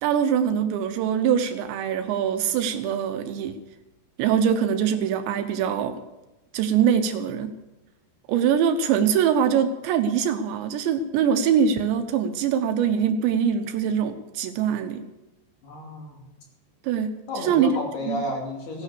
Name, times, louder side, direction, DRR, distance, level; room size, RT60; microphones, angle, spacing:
voice 1, 0.0-3.6 4.2-6.0 6.5-7.6 8.3-15.0 16.8-17.8 18.1-18.2, right 8 dB, 80° right, 8 dB, 2.9 m, -23 dB
voice 2, 15.6-16.2 17.3-18.8, left 1 dB, 60° left, 0 dB, 4.4 m, -32 dB
16.5 x 9.4 x 6.9 m, 1.0 s
omnidirectional pair, 5.4 m